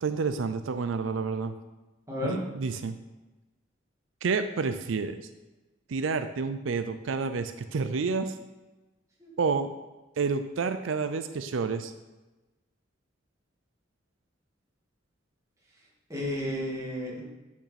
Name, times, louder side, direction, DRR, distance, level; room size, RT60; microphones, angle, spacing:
voice 1, 0.0-1.5 2.3-3.0 4.2-5.2 5.9-8.4 9.4-9.7 10.2-11.9, right 4 dB, 90° right, 10 dB, 0.5 m, -29 dB
voice 2, 2.1-2.4 9.2-9.3 16.1-17.2, left 1 dB, 15° right, -5 dB, 2.2 m, -32 dB
8.6 x 6.0 x 4.2 m, 1.1 s
head